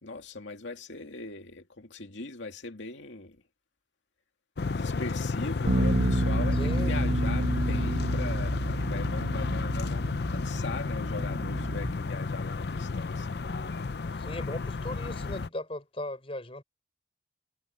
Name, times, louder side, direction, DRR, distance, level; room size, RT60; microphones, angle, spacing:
voice 1, 0.0-3.4 4.7-13.4, left 3 dB, 90° left, 2.3 m, -40 dB
sound 1, 4.6-15.5, left 4 dB, 60° left, 0.5 m, -32 dB
Bass guitar, 5.7-11.9, right 1 dB, 60° right, 1.3 m, -29 dB
voice 2, 6.5-6.9 14.1-16.6, left 1 dB, 30° left, 4.9 m, -37 dB
head